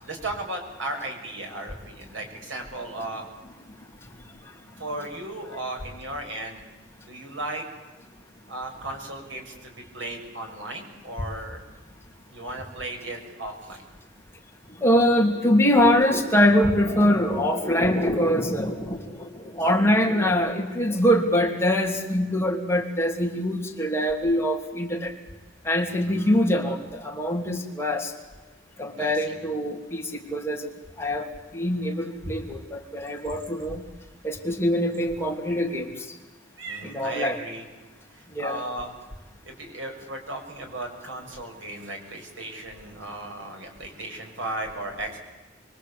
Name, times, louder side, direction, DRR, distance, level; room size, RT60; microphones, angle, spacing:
voice 1, 0.0-3.3 4.8-6.6 7.1-7.7 8.5-11.6 12.3-13.8 26.0-26.4 28.9-29.3 36.6-37.6 38.1-38.9 39.4-45.2, right 1 dB, 85° right, 2 dB, 6.6 m, -35 dB
voice 2, 14.8-25.1 25.6-28.1 28.8-30.7 31.0-33.8 34.2-35.9 36.8-37.4 38.3-38.6, equal, 15° left, 1 dB, 3.0 m, -23 dB
29.0 x 23.0 x 8.5 m, 1.2 s
head